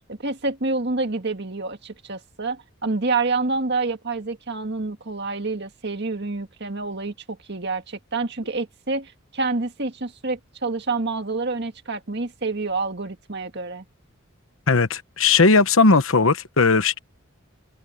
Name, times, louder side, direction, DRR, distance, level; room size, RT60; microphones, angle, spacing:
voice 1, 0.1-13.8, right 3 dB, 50° right, 1.9 m, -28 dB
voice 2, 14.7-17.0, left 4 dB, 70° left, 1.1 m, -17 dB
head